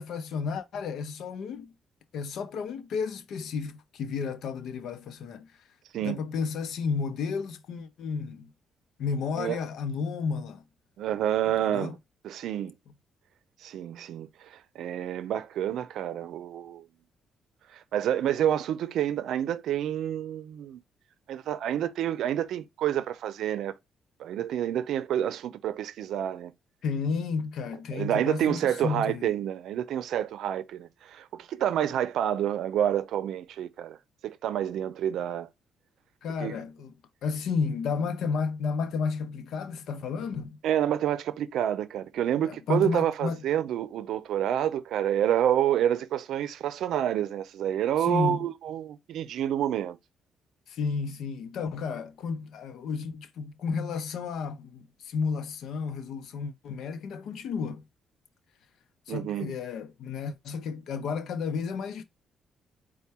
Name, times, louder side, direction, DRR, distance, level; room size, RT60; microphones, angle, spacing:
voice 1, 0.0-1.7 2.1-5.5 6.0-8.5 9.0-10.6 11.7-11.9 26.8-29.3 36.2-36.9 37.2-40.6 42.4-43.4 48.0-48.4 50.7-57.8 59.1-62.0, left 5 dB, 75° left, 0.6 m, -32 dB
voice 2, 11.0-12.0 12.2-12.7 13.6-16.9 17.7-20.8 21.3-23.7 24.2-26.5 27.9-34.0 34.2-35.5 36.4-36.6 40.6-50.0 59.1-59.5, right 10 dB, 75° right, 0.5 m, -28 dB
4.5 x 2.2 x 4.2 m
cardioid pair, 90°, 0 cm